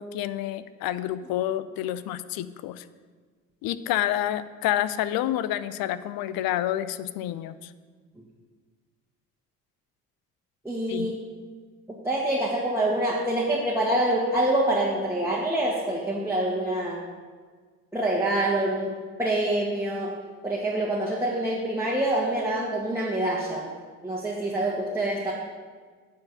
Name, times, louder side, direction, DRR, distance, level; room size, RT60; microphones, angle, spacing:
voice 1, 0.0-2.8 3.6-7.7 10.9-11.1, left 12 dB, 55° left, 14 dB, 0.6 m, -29 dB
voice 2, 10.6-11.2 12.0-17.0 17.9-18.9 19.2-20.1 20.4-23.7 24.0-25.3, right 1 dB, 5° right, -5 dB, 1.7 m, -26 dB
9.3 x 4.6 x 6.6 m, 1.5 s
hypercardioid pair, 55°, 42 cm